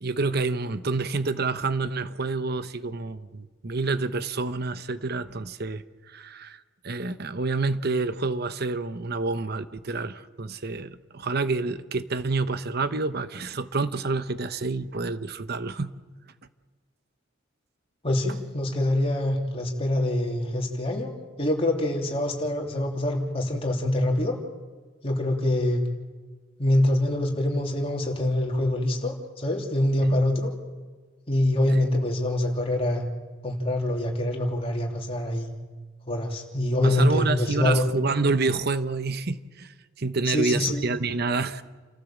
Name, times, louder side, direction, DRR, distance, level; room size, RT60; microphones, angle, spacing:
voice 1, 0.0-15.9 30.0-30.1 31.7-31.8 36.8-41.6, right 3 dB, 50° right, 12 dB, 0.9 m, -28 dB
voice 2, 18.0-21.1 21.4-24.4 25.0-25.8 26.6-30.5 31.3-33.0 33.4-35.5 36.1-37.9 40.3-40.9, left 1 dB, 30° left, 0 dB, 3.2 m, -25 dB
29.0 x 14.0 x 7.3 m, 1.4 s
head